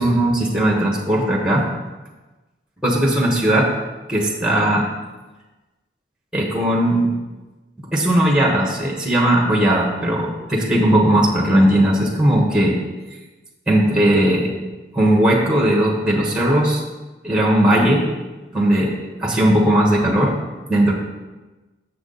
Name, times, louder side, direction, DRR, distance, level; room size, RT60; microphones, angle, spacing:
voice 1, 0.0-1.6 2.8-3.7 4.1-4.9 6.3-7.1 7.9-12.8 13.7-14.5 14.9-16.8 17.2-18.1 18.5-20.4 20.7-20.9, right 1 dB, 5° right, -1 dB, 1.1 m, -17 dB
7.0 x 6.7 x 4.0 m, 1.2 s
head